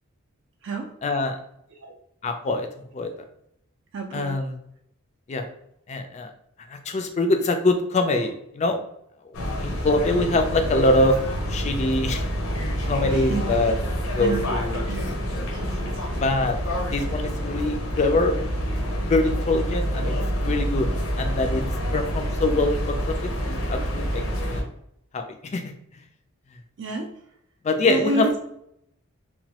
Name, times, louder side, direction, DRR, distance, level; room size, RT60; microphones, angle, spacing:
voice 1, 1.0-1.4 2.2-2.7 2.9-3.1 4.1-4.6 5.3-5.5 5.9-6.3 6.7-8.8 9.6-11.2 11.5-12.2 12.9-13.7 14.1-14.9 16.2-16.6 16.9-18.4 19.1-20.2 20.4-20.9 21.2-21.7 21.9-23.1 23.5-24.6 25.1-25.2 25.5-25.6 27.6-28.3, left 2 dB, 30° left, 5 dB, 0.3 m, -23 dB
voice 2, 3.9-4.3 13.1-13.5 14.2-14.5 14.9-15.1 15.5-16.0 26.8-27.1 27.9-28.4, right 2 dB, 55° right, 2 dB, 0.4 m, -29 dB
sound 1, 9.3-24.6, equal, 75° left, 0.7 m, -27 dB
3.0 x 2.2 x 2.8 m, 0.75 s
head